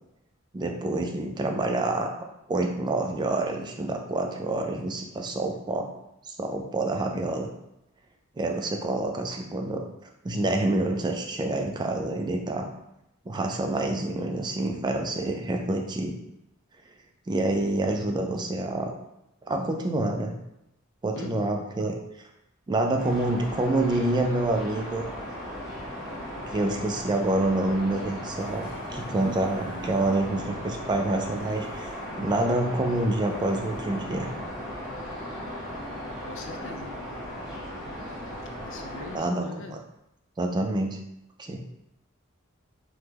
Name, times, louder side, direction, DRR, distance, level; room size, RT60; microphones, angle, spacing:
voice 1, 0.5-2.1 2.5-5.9 6.3-7.5 8.4-9.8 10.2-12.7 13.3-16.1 17.3-18.9 19.5-20.3 21.0-21.9 22.7-25.1 26.5-31.9 32.2-34.3 39.1-39.7 40.4-41.0 41.4-41.6, right 2 dB, 20° right, 2 dB, 0.3 m, -27 dB
voice 2, 21.1-21.5 36.2-37.0 38.6-39.8, left 4 dB, 60° left, 3 dB, 0.4 m, -41 dB
sound 1, 23.0-39.2, equal, ahead, 1.1 m, -37 dB
sound 2, 28.3-35.1, equal, 20° left, 0.7 m, -46 dB
3.4 x 2.2 x 2.9 m, 0.85 s
head